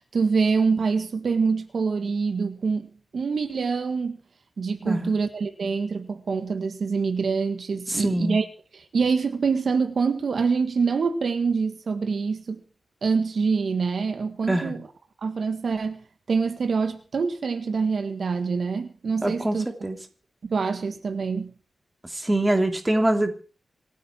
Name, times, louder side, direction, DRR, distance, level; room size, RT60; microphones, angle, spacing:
voice 1, 0.0-4.2 4.6-8.5 8.7-12.6 13.0-14.9 15.2-19.7 20.4-21.5, right 5 dB, 65° right, 1.8 m, -25 dB
voice 2, 7.9-8.4 14.5-14.7 19.2-20.0 22.1-23.3, right 1 dB, 15° right, 3.0 m, -24 dB
27.0 x 9.4 x 4.6 m
cardioid pair, 70°, 0 cm